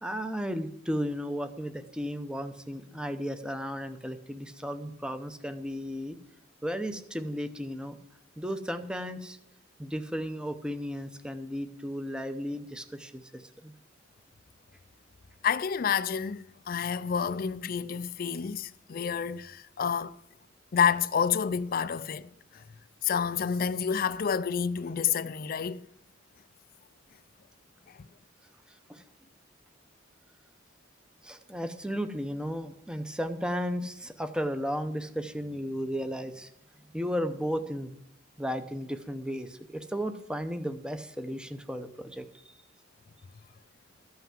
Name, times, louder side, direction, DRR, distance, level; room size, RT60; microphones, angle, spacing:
voice 1, 0.0-6.2 6.6-8.0 8.4-9.4 9.8-13.7 28.9-29.0 31.2-36.5 36.9-37.9 38.4-42.3, equal, 5° right, 0.7 m, -34 dB
voice 2, 15.4-20.2 20.7-22.6 23.0-25.9 27.9-28.0, left 7 dB, 45° left, 0.4 m, -29 dB
13.5 x 5.7 x 7.5 m
head